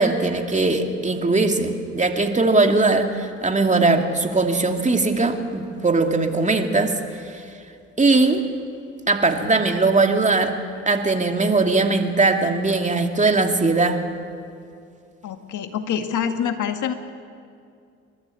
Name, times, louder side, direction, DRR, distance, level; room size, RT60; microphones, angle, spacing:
voice 1, 0.0-6.9 7.3-7.4 8.0-8.5 9.1-10.5 10.9-14.0, right 3 dB, 20° right, 4 dB, 2.6 m, -20 dB
voice 2, 15.2-16.9, left 8 dB, 60° left, 7 dB, 2.0 m, -26 dB
28.5 x 13.0 x 8.6 m, 2.4 s
hypercardioid pair, 60°, 34 cm